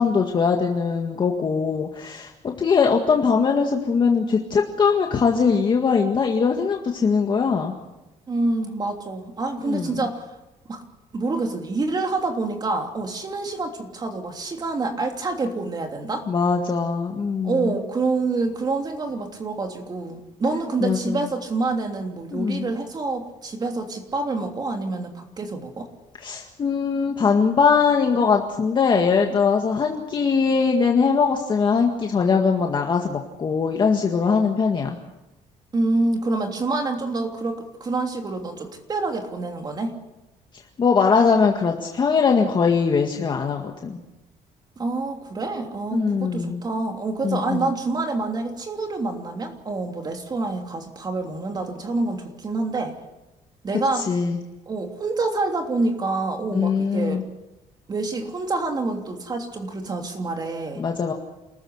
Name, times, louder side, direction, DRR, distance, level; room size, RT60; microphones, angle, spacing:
voice 1, 0.0-7.7 9.6-10.0 16.3-17.7 20.8-21.3 22.3-22.7 26.2-35.0 40.8-44.0 45.9-46.6 47.2-47.7 54.0-54.4 56.5-57.2 60.8-61.1, left 5 dB, 35° left, 2 dB, 1.9 m, -21 dB
voice 2, 8.3-10.2 10.7-10.8 11.1-16.3 17.4-25.9 35.7-40.0 44.8-52.9 53.6-54.1 54.7-57.2 57.9-60.8, right 3 dB, 30° right, 3 dB, 3.1 m, -27 dB
28.5 x 14.5 x 8.2 m, 1.0 s
cardioid pair, 140°, 14 cm